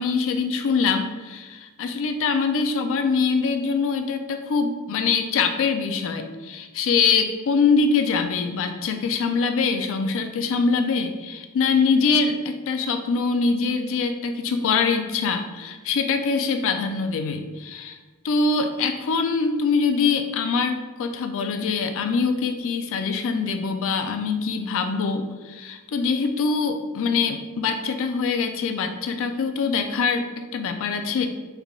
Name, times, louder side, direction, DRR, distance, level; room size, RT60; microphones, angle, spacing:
voice 1, 0.0-18.0 18.2-31.3, left 5 dB, 65° left, 7 dB, 0.4 m, -23 dB
3.3 x 2.3 x 3.6 m, 1.3 s
head